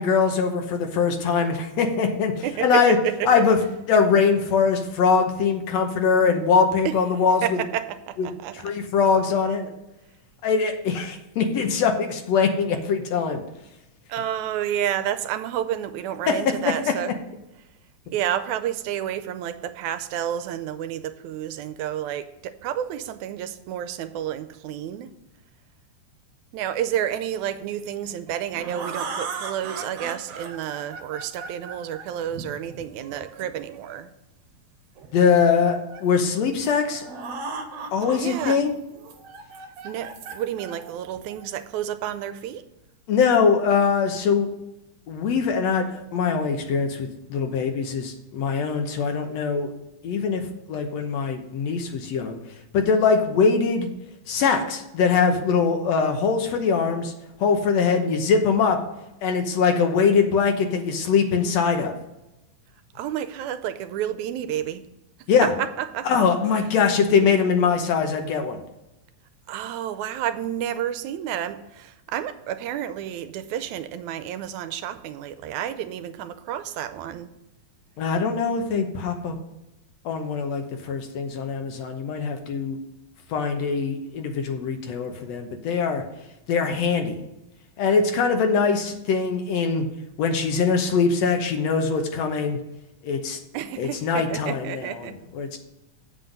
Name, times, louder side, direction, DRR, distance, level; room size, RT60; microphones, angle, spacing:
voice 1, 0.0-3.0 3.3-3.6 3.9-7.4 8.6-9.7 10.4-13.4 16.3-16.4 35.1-37.1 37.9-38.7 43.1-44.5 45.1-49.7 50.0-50.4 50.7-52.4 52.7-53.9 54.3-57.1 57.4-58.8 59.2-61.9 65.3-65.5 66.1-68.6 78.0-79.4 80.1-82.8 83.3-86.0 86.5-87.2 87.8-89.9 90.2-92.6 93.0-93.4 93.8-95.1 95.4-95.6, left 5 dB, 70° left, 5 dB, 2.0 m, -22 dB
voice 2, 2.4-3.5 6.9-7.0 7.4-8.7 14.1-17.2 18.1-25.1 26.5-34.1 38.1-38.7 39.8-42.7 63.0-64.8 65.4-66.1 69.5-77.3 93.5-95.2, right 10 dB, 85° right, 12 dB, 1.9 m, -30 dB
sound 1, 28.1-34.0 35.0-36.1 36.6-36.7 36.9-38.5 38.9-41.6, right 4 dB, 65° right, 2.0 m, -37 dB
7.8 x 7.7 x 5.2 m, 0.91 s
omnidirectional pair, 3.4 m